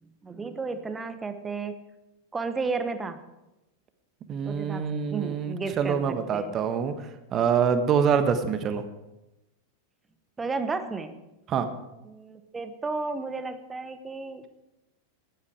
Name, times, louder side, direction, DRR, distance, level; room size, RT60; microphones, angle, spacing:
voice 1, 0.0-1.8 2.3-3.2 4.4-4.9 5.1-6.6 10.4-11.2 12.0-14.4, right 4 dB, 15° right, 10 dB, 1.2 m, -33 dB
voice 2, 4.3-8.8 11.5-11.7, right 7 dB, 30° right, 9 dB, 1.4 m, -25 dB
15.0 x 11.5 x 4.9 m, 0.97 s
figure-of-eight pair, 90°, 0 cm